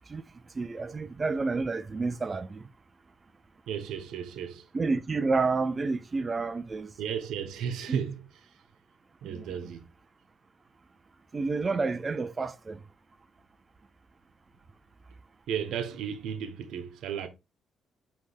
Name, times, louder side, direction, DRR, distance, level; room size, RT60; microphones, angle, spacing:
voice 1, 0.6-2.6 4.7-6.9 7.9-8.0 9.3-9.4 11.3-12.8, right 3 dB, 35° right, 0.5 m, -29 dB
voice 2, 3.7-4.7 7.0-8.6 9.2-9.8 15.5-17.3, right 8 dB, 80° right, 1.1 m, -34 dB
8.3 x 3.5 x 3.4 m
cardioid pair, 75°, 0 cm